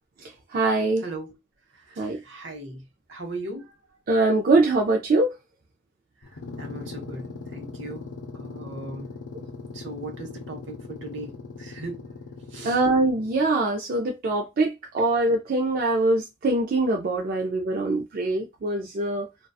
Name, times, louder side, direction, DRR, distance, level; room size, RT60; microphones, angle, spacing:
voice 1, 0.5-1.0 2.0-2.2 4.1-5.3 9.3-9.4 12.6-19.3, right 2 dB, 45° right, 0.4 m, -23 dB
voice 2, 1.0-1.4 1.7-2.8 3.1-3.7 6.2-9.1 9.7-11.3 11.6-12.1 12.5-12.8, right 2 dB, 70° right, 0.8 m, -38 dB
sound 1, 6.2-13.6, left 3 dB, 75° left, 0.5 m, -40 dB
2.6 x 2.2 x 2.2 m
head